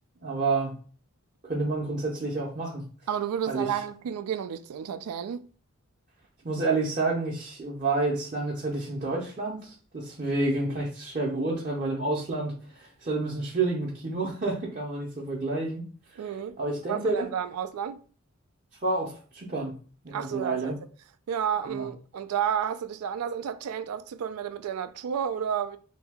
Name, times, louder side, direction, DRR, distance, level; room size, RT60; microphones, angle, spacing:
voice 1, 0.2-0.7 1.4-2.8 3.5-3.7 6.4-15.9 16.6-17.3 18.8-19.7 20.0-20.7 21.7-21.9, right 3 dB, 35° right, 0.6 m, -29 dB
voice 2, 3.1-5.5 16.2-16.6 16.9-18.0 20.1-20.8 21.3-25.8, right 8 dB, 85° right, 0.3 m, -31 dB
2.7 x 2.7 x 3.4 m
head